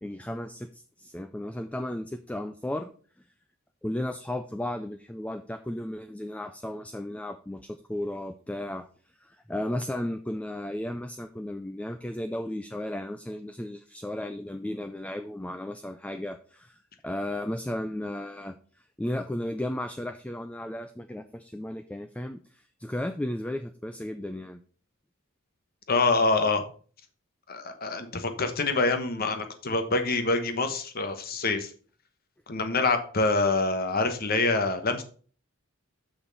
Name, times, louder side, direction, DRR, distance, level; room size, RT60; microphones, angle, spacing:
voice 1, 0.0-2.9 3.8-8.9 9.2-18.6 19.0-24.6, left 1 dB, 5° left, 8 dB, 0.3 m, -34 dB
voice 2, 25.9-26.6 27.5-31.7 32.5-35.0, left 3 dB, 45° left, 8 dB, 1.1 m, -26 dB
6.4 x 5.8 x 5.3 m, 0.42 s
head